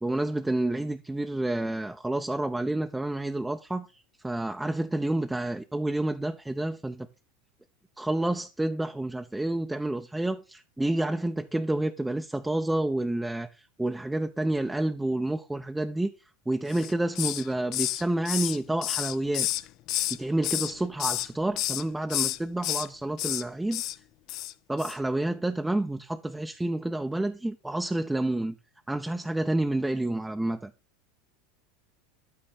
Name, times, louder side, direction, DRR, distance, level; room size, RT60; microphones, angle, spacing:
voice 1, 0.0-3.9 4.2-7.1 8.0-16.1 16.5-19.5 20.1-23.8 24.7-28.5 28.9-30.7, right 1 dB, 5° right, 0.6 m, -29 dB
Hiss, 16.7-17.5 17.7-20.2 20.4-21.3 21.6-21.8 22.1-22.9 23.2-23.4 23.7-24.0 24.3-24.5 24.8-25.0, left 15 dB, 50° left, 0.5 m, -30 dB
12.0 x 4.3 x 4.1 m
hypercardioid pair, 80°, 0 cm